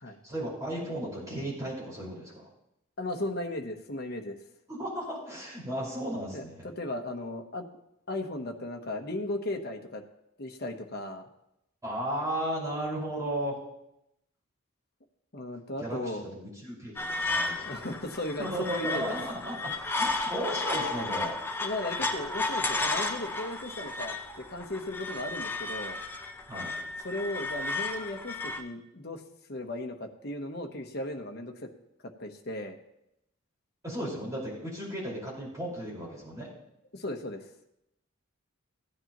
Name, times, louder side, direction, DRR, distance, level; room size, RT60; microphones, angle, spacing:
voice 1, 0.2-2.5 4.7-6.6 11.8-13.6 15.8-17.6 18.4-21.3 26.5-26.7 33.8-36.5, right 1 dB, 15° right, -5 dB, 5.0 m, -35 dB
voice 2, 3.0-4.4 6.3-7.6 8.1-10.0 10.4-11.3 15.3-16.2 17.6-19.2 21.6-26.0 27.0-29.2 29.5-31.7 32.2-32.8 36.9-37.5, left 1 dB, 50° left, 3 dB, 1.1 m, -36 dB
sound 1, 17.0-28.6, left 3 dB, 10° left, 0.6 m, -33 dB
15.5 x 9.8 x 3.0 m, 0.83 s
head